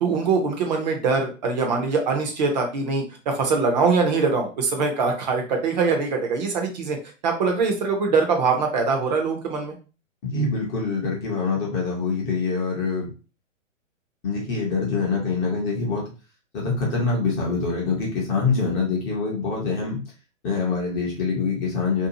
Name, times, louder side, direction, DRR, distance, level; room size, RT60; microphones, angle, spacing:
voice 1, 0.0-7.0 7.2-9.7, right 4 dB, 35° right, 3 dB, 0.6 m, -23 dB
voice 2, 10.2-13.1 14.2-16.0 16.5-20.0 20.4-22.1, left 4 dB, 20° left, -3 dB, 0.5 m, -25 dB
2.6 x 2.3 x 2.7 m, 0.34 s
figure-of-eight pair, 120°, 39 cm